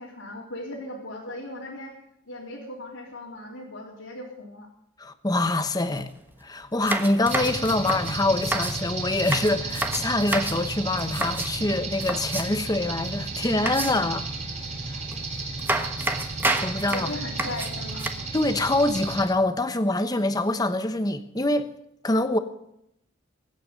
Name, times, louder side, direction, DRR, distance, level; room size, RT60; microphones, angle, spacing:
voice 1, 0.0-1.9 2.3-4.7 16.9-18.1, left 1 dB, 80° left, 3.5 m, -38 dB
voice 2, 5.0-6.1 6.4-14.3 14.9-15.0 16.0-16.1 16.6-17.1 18.3-21.7 22.0-22.4, left 2 dB, 20° left, 1.0 m, -25 dB
sound 1, 5.9-6.0 6.3-6.4 6.8-8.8 9.2-10.6 11.0-11.5 12.0-12.7 13.7-14.2 15.1-15.2 15.6-18.1, right 2 dB, 10° right, 1.3 m, -29 dB
sound 2, 7.2-19.2, right 3 dB, 35° right, 4.1 m, -33 dB
24.0 x 9.2 x 5.3 m
head